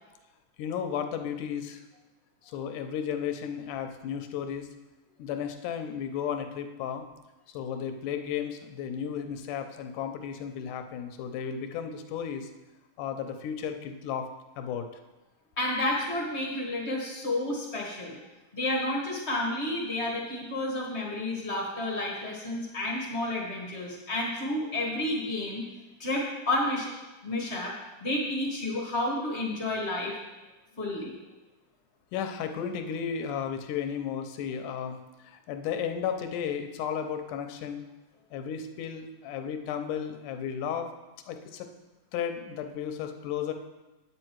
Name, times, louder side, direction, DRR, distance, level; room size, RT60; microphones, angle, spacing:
voice 1, 0.6-1.8 2.4-4.7 5.2-7.1 7.5-12.5 13.0-14.3 14.6-14.9 32.1-37.8 38.3-40.9 41.3-41.7 42.1-43.5, left 8 dB, 85° left, 7 dB, 2.3 m, -34 dB
voice 2, 15.6-18.2 18.5-25.6 26.0-26.9 27.2-27.7 28.0-30.1 30.8-31.1, left 1 dB, 30° left, -3 dB, 1.2 m, -30 dB
9.1 x 8.9 x 4.6 m, 1.1 s
omnidirectional pair, 3.5 m